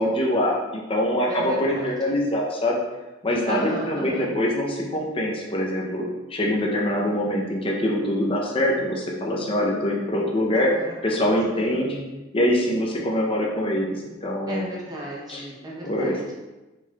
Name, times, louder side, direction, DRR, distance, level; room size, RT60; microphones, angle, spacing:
voice 1, 0.0-2.8 3.2-10.7 11.0-12.0 12.3-14.7 15.3-15.4 15.8-16.2, left 1 dB, 30° left, -2 dB, 0.7 m, -24 dB
voice 2, 1.3-1.9 3.4-4.3 10.5-11.2 11.5-11.8 14.5-16.3, right 1 dB, 20° right, -4 dB, 0.8 m, -34 dB
4.3 x 4.2 x 2.4 m, 1.1 s
head